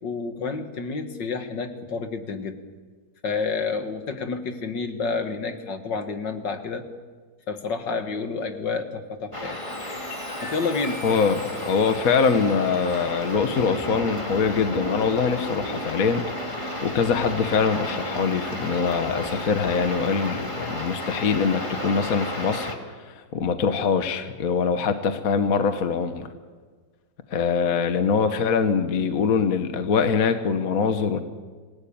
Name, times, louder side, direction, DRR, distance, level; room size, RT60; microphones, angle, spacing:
voice 1, 0.0-2.6 3.2-6.8 7.5-9.6 10.4-11.2, left 4 dB, 65° left, 7 dB, 2.3 m, -29 dB
Chime, 9.3-15.2 15.8-16.1, left 2 dB, 85° left, 5.9 m, -46 dB
sound 1, 9.3-22.7, left 1 dB, 15° left, 2.7 m, -32 dB
voice 2, 11.0-26.3 27.3-31.2, left 5 dB, 50° left, 8 dB, 1.5 m, -23 dB
27.0 x 18.0 x 8.7 m, 1.5 s
omnidirectional pair, 2.1 m